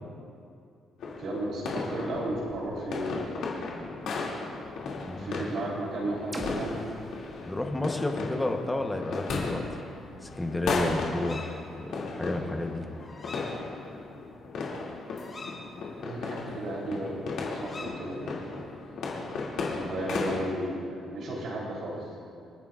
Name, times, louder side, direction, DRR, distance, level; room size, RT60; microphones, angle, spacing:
sound 1, 1.0-20.4, left 3 dB, 70° left, 2.4 m, -35 dB
voice 1, 1.2-4.0 5.2-6.8 15.4-18.5 19.6-22.1, right 1 dB, 60° right, -3 dB, 3.4 m, -34 dB
sound 2, 6.3-10.2, right 1 dB, 25° right, 1.6 m, -45 dB
voice 2, 7.4-9.8 10.2-12.9, left 1 dB, 10° left, 4 dB, 0.9 m, -31 dB
sound 3, 10.0-10.6 11.0-11.5 13.0-13.5 13.9-14.0 14.3-15.6 17.5-17.9, left 3 dB, 30° left, 2.4 m, -45 dB
27.0 x 9.3 x 2.5 m, 2.4 s
cardioid pair, 135°, 0 cm